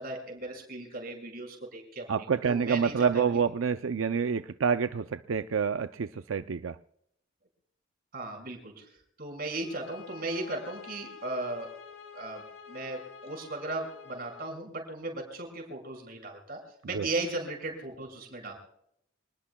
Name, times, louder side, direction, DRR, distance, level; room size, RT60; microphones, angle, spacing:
voice 1, 0.0-2.1 2.4-3.4 8.1-8.9 9.2-11.7 12.1-16.6 16.8-18.5, right 2 dB, 50° right, 2 dB, 6.0 m, -36 dB
voice 2, 2.1-6.8 16.9-17.1, right 6 dB, 90° right, 10 dB, 0.5 m, -28 dB
sound 1, 9.6-14.6, left 6 dB, 70° left, 2.5 m, -48 dB
27.0 x 19.5 x 2.3 m, 0.73 s
head